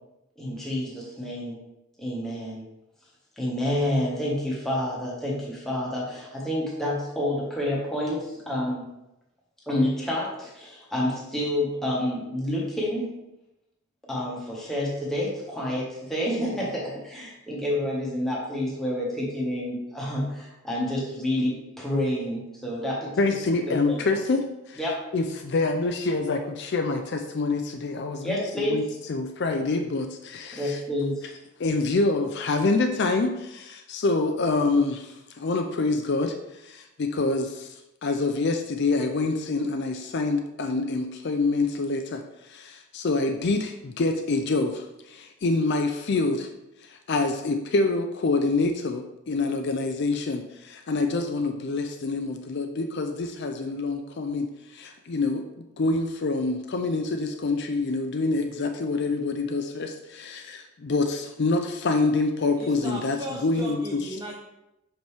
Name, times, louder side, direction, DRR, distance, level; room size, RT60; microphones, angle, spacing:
voice 1, 0.4-1.6 2.0-2.6 3.4-8.8 9.7-13.1 14.1-23.2 23.7-24.0 24.8-25.0 28.2-29.0 30.5-31.3, left 1 dB, ahead, -5 dB, 1.5 m, -29 dB
voice 2, 23.2-24.8 25.1-30.8 31.6-46.5 46.8-55.5 55.8-63.8, left 3 dB, 50° left, 5 dB, 0.4 m, -26 dB
voice 3, 62.6-64.3, right 1 dB, 15° right, -1 dB, 0.5 m, -36 dB
6.0 x 5.2 x 3.4 m, 0.91 s
head